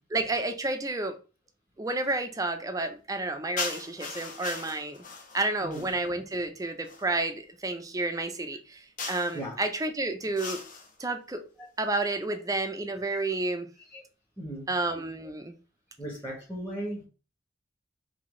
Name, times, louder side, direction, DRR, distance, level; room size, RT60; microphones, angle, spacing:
voice 1, 0.1-1.2 1.8-5.0 5.3-8.8 9.1-10.6 11.0-11.4 11.8-13.7 14.7-15.5, right 2 dB, 20° right, 0.5 m, -30 dB
sound 1, 3.6-6.0 6.8-7.1 9.0-9.4 10.3-10.9, left 4 dB, 45° left, 0.8 m, -38 dB
voice 2, 14.4-14.7 16.0-17.1, right 1 dB, 10° left, 1.1 m, -37 dB
3.8 x 2.7 x 3.7 m
head